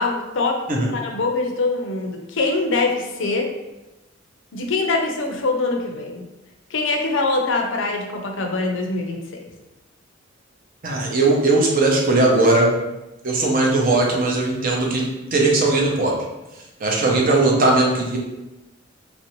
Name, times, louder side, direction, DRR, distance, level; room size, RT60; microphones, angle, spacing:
voice 1, 0.0-3.5 4.5-6.3 6.7-9.5, left 3 dB, 65° left, 2 dB, 0.5 m, -23 dB
voice 2, 10.8-12.7 13.2-15.0 15.3-16.1 16.8-18.2, right 2 dB, 45° right, -2 dB, 0.6 m, -18 dB
3.0 x 2.6 x 3.0 m, 1.0 s
head